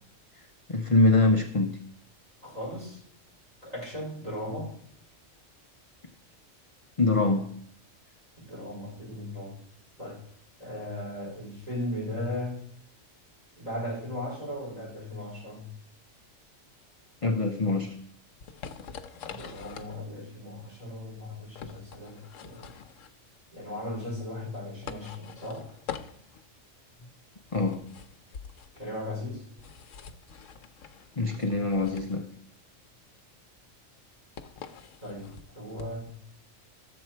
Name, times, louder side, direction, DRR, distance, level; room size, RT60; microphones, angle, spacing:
voice 1, 0.7-1.8 7.0-7.6 17.2-18.0 27.5-27.9 31.2-32.3, left 3 dB, 30° left, 0.6 m, -24 dB
voice 2, 2.4-3.0 3.6-4.7 8.5-9.6 10.0-10.2 10.6-12.6 13.6-15.7 19.2-22.7 23.5-25.7 28.7-29.4 35.0-36.1, left 1 dB, 30° right, 4.8 m, -37 dB
sound 1, 18.2-36.1, left 7 dB, 75° left, 1.1 m, -45 dB
13.0 x 7.4 x 4.5 m
omnidirectional pair, 1.4 m